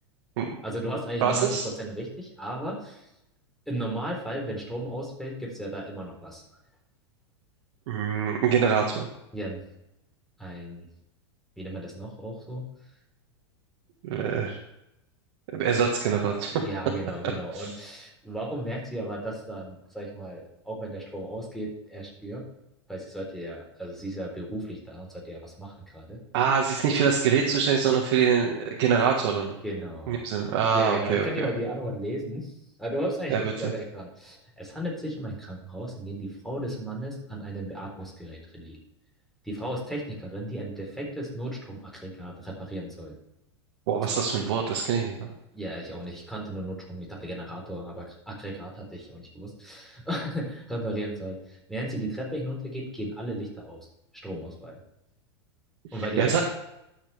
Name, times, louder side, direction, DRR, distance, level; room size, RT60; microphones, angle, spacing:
voice 1, 0.6-3.1 3.7-6.4 9.3-9.6 10.4-10.9 11.6-12.7 16.5-22.4 22.9-26.2 29.6-30.2 30.7-32.5 32.8-38.8 39.4-43.2 45.5-53.9 54.1-54.8 55.9-56.4, right 1 dB, ahead, -2 dB, 3.8 m, -35 dB
voice 2, 1.2-1.6 7.9-9.1 14.0-14.6 15.5-16.5 17.5-17.7 26.3-29.6 30.1-31.4 33.3-33.7 43.9-45.3 55.9-56.4, right 7 dB, 60° right, 0 dB, 1.6 m, -24 dB
12.0 x 7.4 x 3.4 m, 0.86 s
hypercardioid pair, 105°, 15 cm